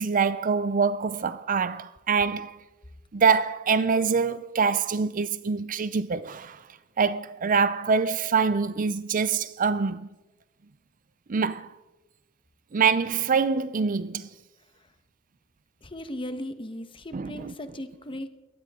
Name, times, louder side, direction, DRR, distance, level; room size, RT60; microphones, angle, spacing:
voice 1, 0.0-2.6 3.1-6.6 7.0-10.1 11.3-11.7 12.7-14.3 17.1-17.5, right 5 dB, 40° right, 0.5 m, -25 dB
voice 2, 15.8-18.3, left 1 dB, 25° left, 1.2 m, -37 dB
22.0 x 17.5 x 3.7 m
head